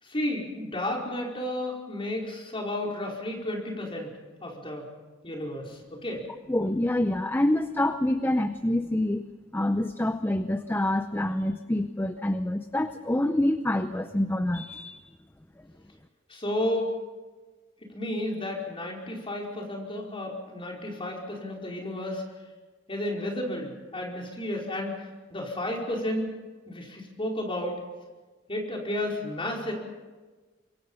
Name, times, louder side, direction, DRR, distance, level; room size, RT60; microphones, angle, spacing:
voice 1, 0.0-4.9 5.2-6.3 16.3-17.0 17.9-22.2 22.9-26.3 26.7-27.8 28.5-29.7, left 1 dB, 30° left, -1 dB, 5.0 m, -32 dB
voice 2, 6.5-9.2 9.5-15.0, left 1 dB, 10° left, 10 dB, 0.6 m, -26 dB
26.0 x 23.0 x 5.6 m, 1.3 s
head